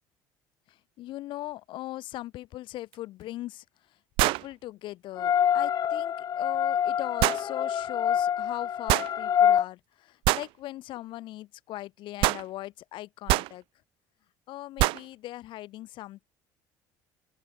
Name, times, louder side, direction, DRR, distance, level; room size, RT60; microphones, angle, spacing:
voice 1, 0.7-13.6 14.5-16.3, left 15 dB, 65° left, 1.5 m, -40 dB
sound 1, 2.9-3.0 4.2-4.5 7.2-7.4 8.9-9.1 10.2-10.5 12.2-12.5 13.3-13.5 14.8-15.0, right 21 dB, 75° right, 0.9 m, -24 dB
sound 2, 5.2-9.6, left 9 dB, 45° left, 1.2 m, -26 dB
open air
supercardioid pair, 85°, 9 cm